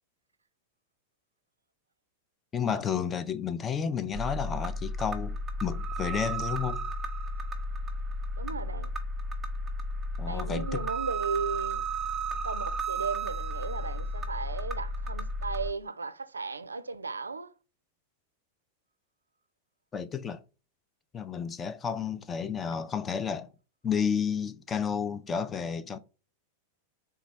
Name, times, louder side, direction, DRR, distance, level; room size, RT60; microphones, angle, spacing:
voice 1, 2.5-6.8 10.2-10.8 19.9-20.4 21.1-23.5 23.8-26.0, left 7 dB, 20° left, 0.4 m, -31 dB
sound 1, 4.1-15.7, right 1 dB, 15° right, 0.8 m, -33 dB
voice 2, 8.4-8.9 10.2-11.8 12.4-17.5, right 4 dB, 75° right, 0.3 m, -35 dB
4.0 x 2.3 x 4.4 m
figure-of-eight pair, 90°, 0 cm